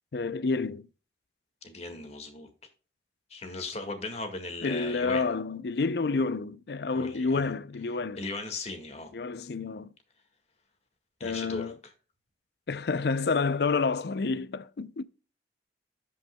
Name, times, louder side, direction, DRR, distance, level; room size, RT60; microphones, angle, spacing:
voice 1, 0.1-0.9 4.6-8.2 9.1-9.9 11.2-11.8 12.7-15.0, left 4 dB, 60° left, 0.5 m, -29 dB
voice 2, 1.6-2.5 3.3-5.3 6.9-7.5 8.2-9.1 11.2-11.7, left 3 dB, 35° left, 1.8 m, -37 dB
14.0 x 5.5 x 2.2 m
head